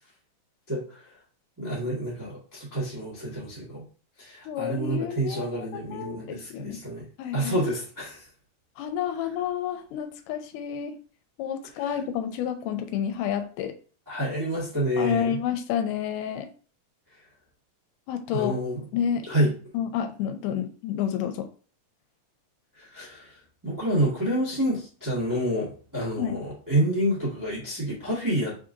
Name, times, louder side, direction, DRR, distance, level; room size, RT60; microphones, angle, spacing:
voice 1, 0.7-1.0 1.6-3.8 4.2-7.0 7.3-8.2 11.8-12.0 14.1-15.4 18.3-18.8 19.3-19.5 22.8-23.3 23.6-28.6, right 1 dB, 25° right, -8 dB, 0.4 m, -28 dB
voice 2, 4.5-6.8 7.2-7.6 8.8-10.9 11.4-13.7 15.0-16.5 18.1-18.6 18.9-19.3 19.7-21.5 26.2-26.4, left 9 dB, 85° left, 8 dB, 2.1 m, -30 dB
4.5 x 3.7 x 2.6 m, 0.39 s
omnidirectional pair, 3.7 m